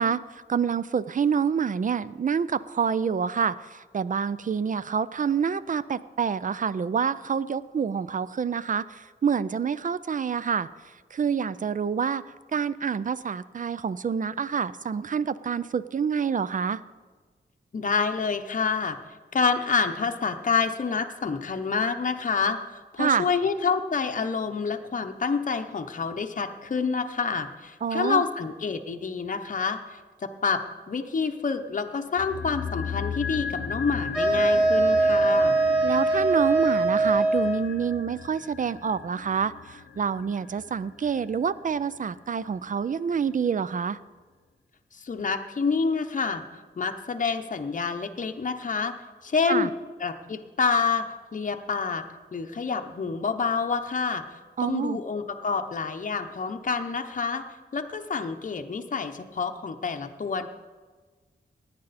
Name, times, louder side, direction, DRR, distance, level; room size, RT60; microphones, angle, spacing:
voice 1, 0.0-10.7 11.1-12.2 12.5-16.8 23.0-23.3 27.8-28.2 35.8-44.0 49.5-49.7 54.6-55.0, right 6 dB, 45° right, 17 dB, 0.4 m, -27 dB
voice 2, 17.7-19.0 19.3-35.6 44.9-46.4 46.8-48.9 49.2-49.7 50.0-52.0 52.3-54.2 54.6-57.4 57.7-60.5, left 5 dB, 45° left, 6 dB, 0.8 m, -28 dB
sound 1, 32.2-42.4 42.7-42.8, left 7 dB, 75° left, 0.7 m, -36 dB
sound 2, 34.1-37.8, right 2 dB, ahead, 4.3 m, -22 dB
17.0 x 9.7 x 4.1 m, 1.4 s
wide cardioid pair, 125°, 19 cm